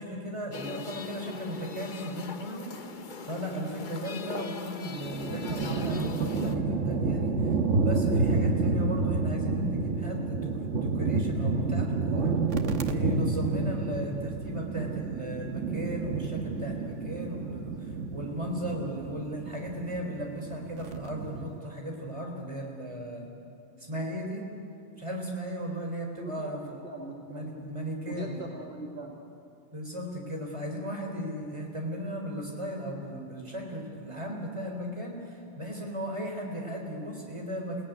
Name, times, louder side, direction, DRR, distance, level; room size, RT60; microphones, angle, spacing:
voice 1, 0.0-2.7 3.2-12.3 12.8-23.3 23.8-24.4 25.0-26.8 27.3-28.4 29.7-37.8, equal, 25° right, 0 dB, 4.2 m, -36 dB
sound 1, 0.5-6.6, left 4 dB, 45° left, 1.1 m, -40 dB
sound 2, 5.0-21.6, right 3 dB, 85° right, 1.5 m, -30 dB
voice 2, 26.2-27.5 28.1-29.2, right 2 dB, 60° right, -1 dB, 2.5 m, -41 dB
28.5 x 17.5 x 9.6 m, 2.6 s
omnidirectional pair, 1.2 m